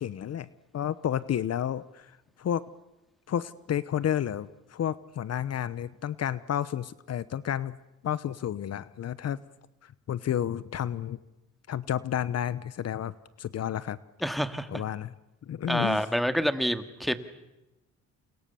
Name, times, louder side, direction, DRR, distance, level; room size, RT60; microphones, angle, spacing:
voice 1, 0.0-2.6 3.3-7.8 8.0-9.4 9.8-11.2 11.7-13.1 13.4-14.0 14.7-15.1 15.4-16.1, left 10 dB, 55° left, 17 dB, 1.0 m, -31 dB
voice 2, 14.2-14.8 15.7-17.2, equal, ahead, 10 dB, 2.0 m, -27 dB
29.5 x 29.0 x 7.0 m, 0.95 s
cardioid pair, 90°, 30 cm